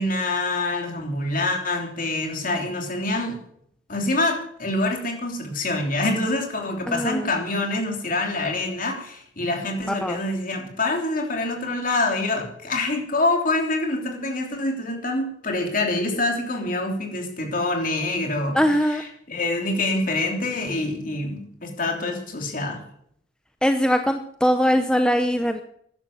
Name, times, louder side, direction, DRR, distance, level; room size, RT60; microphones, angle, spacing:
voice 1, 0.0-3.4 3.9-22.8, left 2 dB, 45° left, 2 dB, 3.2 m, -26 dB
voice 2, 6.9-7.3 10.0-10.2 18.5-19.0 23.6-25.6, equal, 5° left, 7 dB, 0.7 m, -21 dB
13.5 x 11.0 x 7.3 m, 0.67 s
head